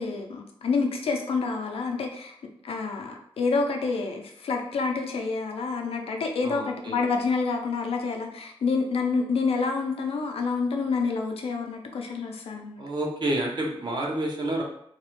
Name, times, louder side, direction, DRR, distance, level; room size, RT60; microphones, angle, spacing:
voice 1, 0.0-2.4 2.6-12.8, left 4 dB, 85° left, 3 dB, 0.4 m, -28 dB
voice 2, 6.4-7.0 12.8-14.6, right 1 dB, 50° right, -1 dB, 0.6 m, -29 dB
2.3 x 2.0 x 2.9 m, 0.70 s
wide cardioid pair, 110°, 10 cm